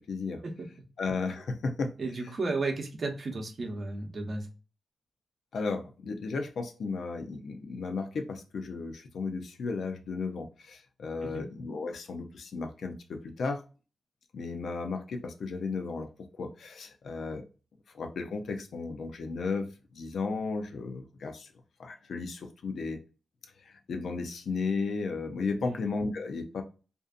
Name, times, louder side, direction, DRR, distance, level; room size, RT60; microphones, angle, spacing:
voice 1, 0.1-0.4 1.0-1.9 5.5-13.6 14.3-17.5 17.9-21.5 21.8-23.0 23.7-26.6, left 4 dB, 70° left, 5 dB, 0.5 m, -34 dB
voice 2, 2.0-4.5 11.2-11.5 25.6-25.8, right 3 dB, 45° right, 4 dB, 0.7 m, -33 dB
2.6 x 2.5 x 2.3 m, 0.34 s
wide cardioid pair, 100°, 0 cm